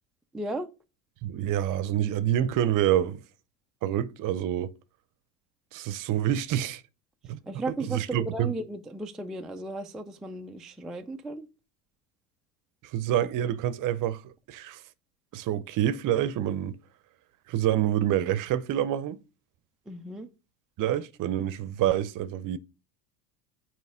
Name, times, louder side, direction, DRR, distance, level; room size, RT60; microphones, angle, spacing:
voice 1, 0.3-0.7 7.4-11.5 19.9-20.3, right 2 dB, ahead, 0.3 m, -35 dB
voice 2, 1.2-3.2 3.8-4.7 5.7-6.8 7.3-7.4 7.8-8.5 12.9-14.8 15.3-16.8 17.5-19.2 20.8-22.6, right 11 dB, 45° right, 0.7 m, -27 dB
9.2 x 3.2 x 4.8 m
supercardioid pair, 110°, 46 cm